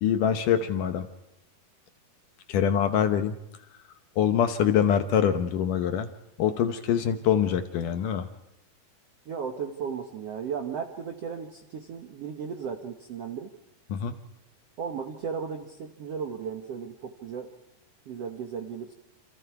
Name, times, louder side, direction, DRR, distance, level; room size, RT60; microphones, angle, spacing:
voice 1, 0.0-1.1 2.5-3.4 4.2-6.1 6.4-8.3 13.9-14.1, left 8 dB, 70° left, 8 dB, 2.2 m, -24 dB
voice 2, 9.3-13.5 14.8-17.5 18.1-18.9, right 6 dB, 65° right, 4 dB, 1.5 m, -35 dB
28.5 x 27.0 x 4.8 m, 0.85 s
omnidirectional pair, 4.5 m